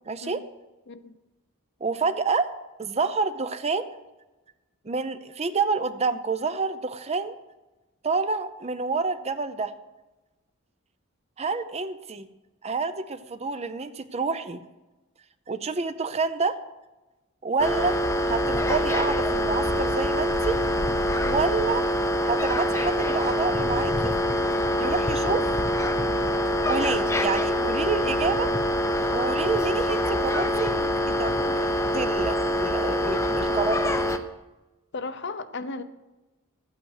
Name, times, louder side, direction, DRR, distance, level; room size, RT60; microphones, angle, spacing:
voice 1, 0.1-0.4 1.8-2.5 2.8-3.9 4.9-7.3 8.0-9.7 11.4-12.3 12.6-14.6 15.5-16.6 17.4-18.0 18.2-20.6 21.2-21.9 22.3-24.2 24.8-25.4 26.7-28.5 29.1-30.9 31.2-33.9, right 4 dB, 30° right, 11 dB, 0.6 m, -28 dB
sound 1, 17.6-34.2, equal, 15° left, 0.6 m, -25 dB
voice 2, 34.9-35.8, left 3 dB, 55° left, 11 dB, 0.7 m, -35 dB
12.5 x 8.8 x 6.5 m, 1.1 s
head